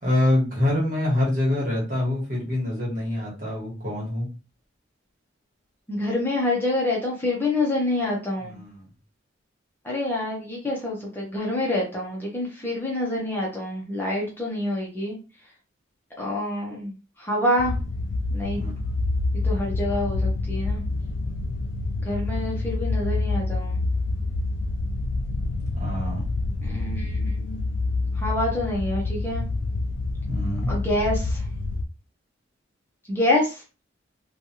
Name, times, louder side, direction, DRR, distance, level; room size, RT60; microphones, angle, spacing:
voice 1, 0.0-4.3 8.4-8.8 18.6-18.7 25.7-26.2 30.3-30.7, left 1 dB, 45° right, -4 dB, 1.4 m, -25 dB
voice 2, 5.9-8.5 9.8-15.2 16.2-16.9 17.2-17.8 18.3-18.7 19.4-20.8 22.1-23.8 26.6-27.7 28.2-29.4 30.7-31.4 33.1-33.6, left 1 dB, 10° left, -4 dB, 0.7 m, -27 dB
sound 1, 17.6-31.8, left 2 dB, 70° left, 0.4 m, -27 dB
3.2 x 2.3 x 2.8 m, 0.32 s
head